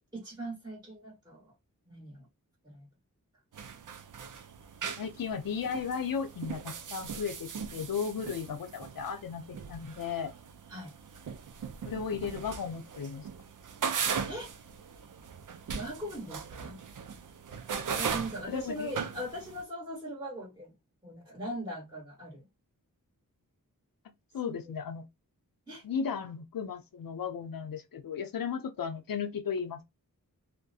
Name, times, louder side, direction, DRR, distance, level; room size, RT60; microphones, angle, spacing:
voice 1, 0.0-1.5 1.9-2.3 2.6-2.9 10.7-11.0 14.3-14.6 15.7-16.8 17.8-20.7 21.0-22.5 24.4-24.6 25.7-25.8, right 1 dB, 10° right, 1.2 m, -40 dB
sound 1, 3.5-19.6, right 6 dB, 65° right, 0.4 m, -39 dB
voice 2, 5.0-10.3 11.8-13.3 18.5-18.9 24.3-25.1 25.8-29.8, left 6 dB, 80° left, 0.5 m, -35 dB
2.3 x 2.1 x 2.6 m
wide cardioid pair, 65°, 34 cm